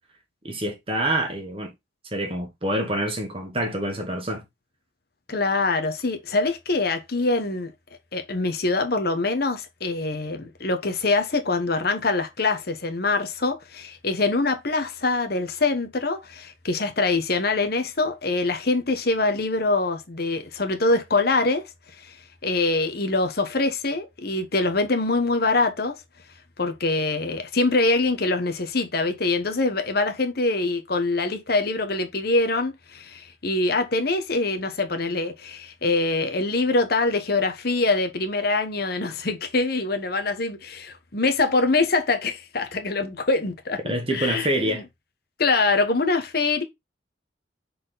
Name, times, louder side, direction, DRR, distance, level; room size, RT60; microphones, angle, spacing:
voice 1, 0.4-1.7 2.1-4.4 43.8-44.8, right 1 dB, 30° right, 1.6 m, -26 dB
voice 2, 5.3-7.7 8.1-21.6 22.0-22.2 22.4-26.0 26.6-44.5 45.4-46.6, left 3 dB, 55° left, 1.1 m, -24 dB
6.1 x 4.3 x 3.9 m
head